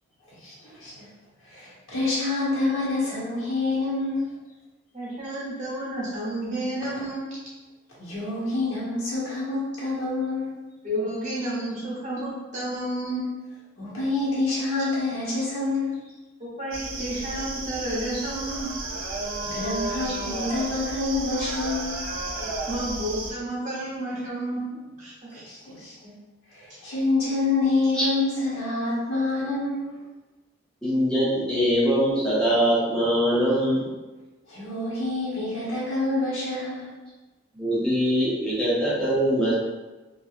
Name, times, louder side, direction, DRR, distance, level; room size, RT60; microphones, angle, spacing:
voice 1, 0.3-1.1 1.4-4.3 8.0-10.6 13.8-16.0 19.4-22.1 25.4-26.1 26.5-30.0 34.5-36.9, left 2 dB, 90° left, -7 dB, 1.1 m, -27 dB
voice 2, 4.9-7.3 10.8-13.3 16.4-18.7 20.0-20.1 22.4-25.4 26.7-26.8, right 1 dB, 35° right, -7 dB, 1.0 m, -31 dB
sound 1, 16.7-23.3, right 2 dB, 80° right, 0.5 m, -33 dB
voice 3, 30.8-33.9 37.5-39.6, equal, 5° left, -9 dB, 0.6 m, -22 dB
3.0 x 2.4 x 2.4 m, 1.2 s
head